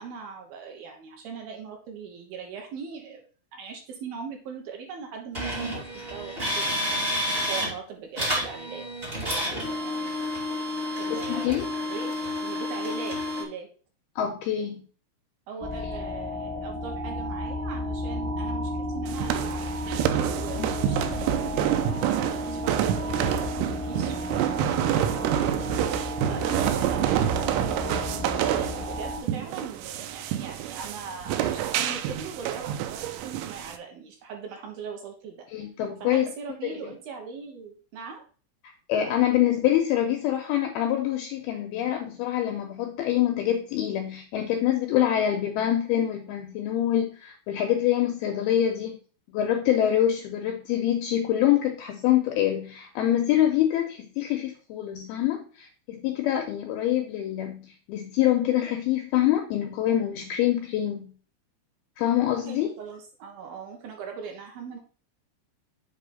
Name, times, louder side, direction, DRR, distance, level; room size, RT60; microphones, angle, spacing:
voice 1, 0.0-7.0 7.5-8.8 9.2-10.1 11.0-13.7 15.5-19.7 20.3-24.2 24.8-35.4 36.0-38.2 62.4-64.8, right 5 dB, 70° right, 2 dB, 2.5 m, -40 dB
sound 1, 5.3-7.7 8.2-13.4, left 1 dB, 50° right, 0.7 m, -30 dB
voice 2, 11.1-11.7 14.2-14.8 20.5-20.7 35.5-36.3 36.6-36.7 38.9-49.0 49.3-61.1 62.0-62.7, left 11 dB, 85° left, 4 dB, 2.2 m, -25 dB
sound 2, 15.6-29.2, left 1 dB, 10° right, 0.9 m, -33 dB
sound 3, 19.1-33.8, right 11 dB, 90° right, 3.0 m, -28 dB
7.7 x 3.4 x 5.1 m, 0.39 s
omnidirectional pair, 5.2 m